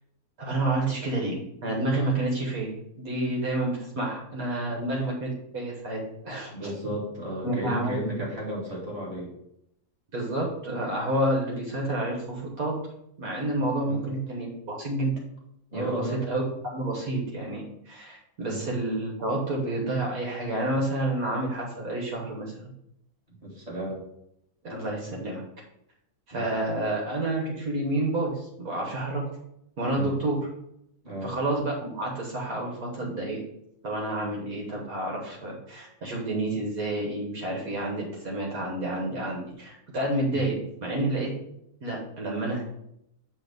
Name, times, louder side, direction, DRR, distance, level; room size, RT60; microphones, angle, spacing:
voice 1, 0.4-6.7 7.4-8.3 10.1-12.7 13.2-15.1 15.7-16.4 16.7-22.6 24.6-25.4 26.3-29.2 29.8-30.4 31.2-33.4 33.8-41.3 41.8-42.6, right 1 dB, 65° right, -1 dB, 1.7 m, -29 dB
voice 2, 6.5-9.3 13.5-14.1 15.7-16.2 18.4-18.6 23.4-24.0 26.3-26.4 29.9-30.1 31.0-31.3, equal, 25° right, -5 dB, 2.0 m, -34 dB
8.3 x 2.8 x 5.2 m, 0.79 s
omnidirectional pair, 1.7 m